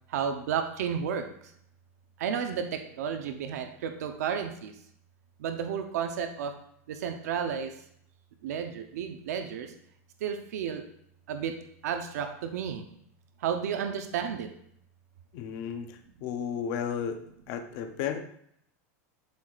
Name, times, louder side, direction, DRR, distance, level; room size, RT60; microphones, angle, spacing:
voice 1, 0.1-1.3 2.2-4.7 5.4-6.5 6.9-7.7 8.4-9.7 10.2-10.8 11.3-11.5 11.8-12.8 13.4-14.5, right 7 dB, 90° right, 6 dB, 0.7 m, -32 dB
voice 2, 15.3-17.2 17.5-18.2, left 8 dB, 40° left, 6 dB, 0.6 m, -33 dB
11.5 x 4.6 x 2.4 m, 0.70 s
supercardioid pair, 180°, 8 cm